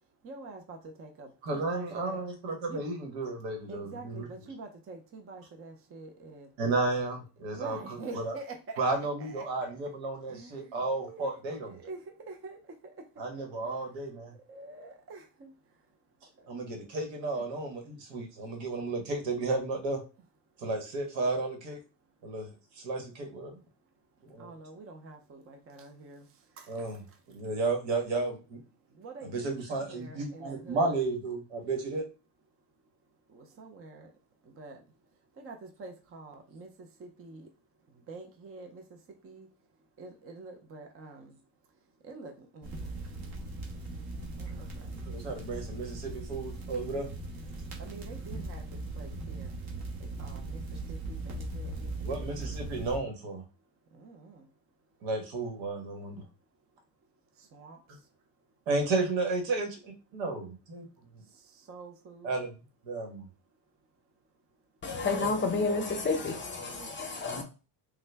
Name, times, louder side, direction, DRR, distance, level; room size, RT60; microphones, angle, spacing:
voice 1, 0.2-2.2 2.7-2.8 3.7-6.5 7.5-8.8 9.2-9.8 10.3-12.6 12.8-12.9 13.3-13.9 14.5-15.5 16.4-16.5 17.3-17.4 24.4-26.3 26.6-26.9 29.0-30.9 33.3-34.1 34.5-34.8 35.4-37.5 38.1-39.0 39.2-39.5 40.0-41.3 42.0-43.0 44.4-44.9 47.8-49.6 50.0-50.6 50.9-51.9 52.4-52.5 53.9-54.4 57.5-57.8 61.5-62.3 66.7-67.1, right 3 dB, 30° right, 0.6 m, -47 dB
voice 2, 1.4-4.3 6.6-8.3 8.8-11.8 13.2-14.3 16.5-20.0 20.6-21.8 22.2-23.6 24.3-24.5 26.7-27.0 27.3-28.6 29.2-32.1 45.1-47.1 52.0-53.4 55.0-56.2 58.7-60.8 61.1-61.2 62.2-62.6 62.8-63.3 65.2-65.3, right 3 dB, 80° right, 1.4 m, -33 dB
sound 1, 42.6-53.0, right 2 dB, 50° right, 1.3 m, -39 dB
voice 3, 64.8-67.4, left 3 dB, 25° left, 0.7 m, -30 dB
3.7 x 2.2 x 3.3 m
cardioid pair, 115°, 46 cm